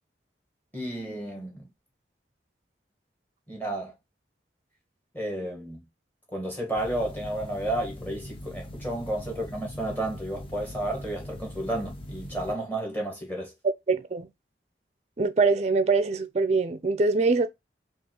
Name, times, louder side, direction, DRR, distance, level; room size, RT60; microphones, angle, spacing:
voice 1, 0.7-1.7 3.5-3.9 5.1-5.8 6.3-13.5, right 1 dB, 10° left, 1.3 m, -32 dB
sound 1, 6.7-12.6, left 1 dB, 30° left, 0.5 m, -41 dB
voice 2, 13.9-14.3 15.2-17.5, right 4 dB, 35° right, 0.4 m, -23 dB
5.3 x 2.5 x 2.9 m
head